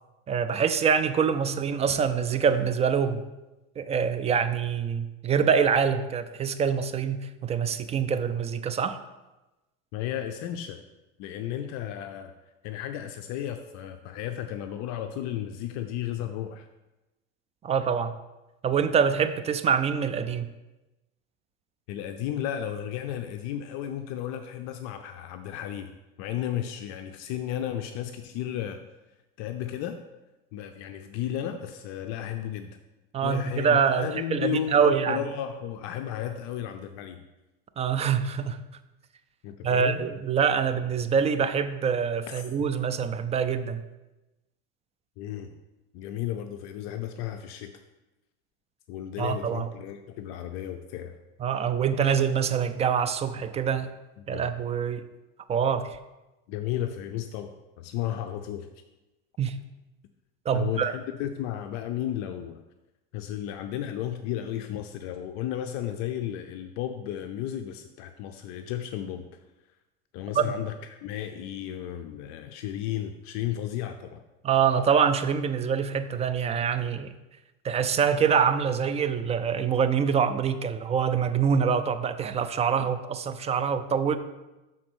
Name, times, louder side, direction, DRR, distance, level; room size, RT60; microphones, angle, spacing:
voice 1, 0.3-3.2 3.8-9.0 17.6-18.1 18.6-20.5 33.1-35.2 37.8-38.6 39.6-43.8 49.2-49.7 51.4-53.9 54.3-55.0 55.5-56.0 59.4-59.6 60.5-60.9 70.3-70.5 74.4-77.1 77.6-84.2, right 7 dB, 20° right, 10 dB, 0.3 m, -25 dB
voice 2, 9.9-10.8 11.2-12.4 12.6-16.7 21.9-25.9 26.2-28.8 29.4-30.0 30.5-32.8 33.2-37.2 39.4-40.1 42.3-42.4 45.2-45.5 45.9-47.7 48.9-51.2 54.2-54.5 56.5-58.7 60.5-62.6 63.1-69.3 70.1-74.2 82.8-82.9, left 11 dB, 60° left, 7 dB, 0.5 m, -33 dB
6.2 x 3.8 x 6.1 m, 1.0 s
supercardioid pair, 120°, 31 cm